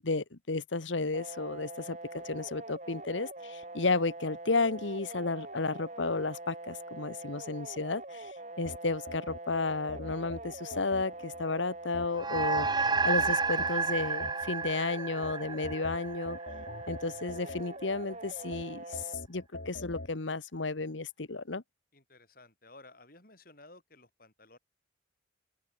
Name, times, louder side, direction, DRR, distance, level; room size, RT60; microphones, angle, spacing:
voice 1, 0.0-16.4 16.9-21.6, left 3 dB, 80° left, 1.3 m, -33 dB
sound 1, 1.1-19.1, right 2 dB, 40° right, 5.6 m, -44 dB
sound 2, 8.6-11.4 11.9-14.7 15.2-18.0 18.5-20.1, left 2 dB, 65° left, 3.2 m, -44 dB
sound 3, 12.2-16.9, right 4 dB, 20° right, 1.5 m, -31 dB
voice 2, 21.9-24.6, left 2 dB, 50° left, 6.9 m, -55 dB
open air
head